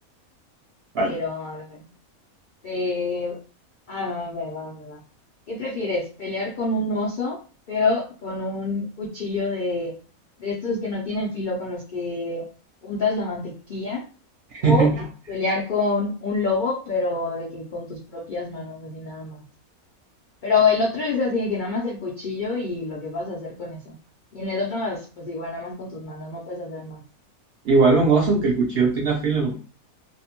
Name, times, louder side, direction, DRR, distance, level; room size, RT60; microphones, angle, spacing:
voice 1, 1.0-1.8 2.6-3.4 3.9-5.0 5.5-7.4 7.7-10.0 10.4-12.5 12.8-14.1 14.6-14.9 15.3-19.4 20.4-23.9 24.3-27.0, left 3 dB, 90° left, -2 dB, 0.4 m, -27 dB
voice 2, 14.6-15.0 27.6-29.6, right 4 dB, 70° right, -1 dB, 0.6 m, -19 dB
2.6 x 2.1 x 2.8 m, 0.38 s
omnidirectional pair, 1.5 m